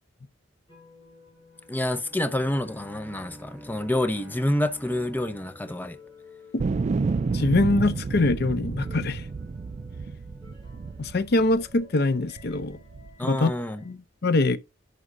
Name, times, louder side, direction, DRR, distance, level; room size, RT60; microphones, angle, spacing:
sound 1, 0.7-13.9, left 3 dB, 25° left, 4.9 m, -53 dB
Bowed string instrument, 1.6-6.3, equal, 5° right, 3.0 m, -48 dB
voice 1, 1.7-6.0 13.2-13.8, left 1 dB, 10° left, 0.6 m, -28 dB
sound 2, 6.6-11.8 12.4-13.1, right 4 dB, 35° right, 0.3 m, -30 dB
voice 2, 7.3-9.3 11.0-12.8 13.2-13.5 13.8-14.6, left 2 dB, 55° left, 0.6 m, -23 dB
11.0 x 6.3 x 2.6 m
head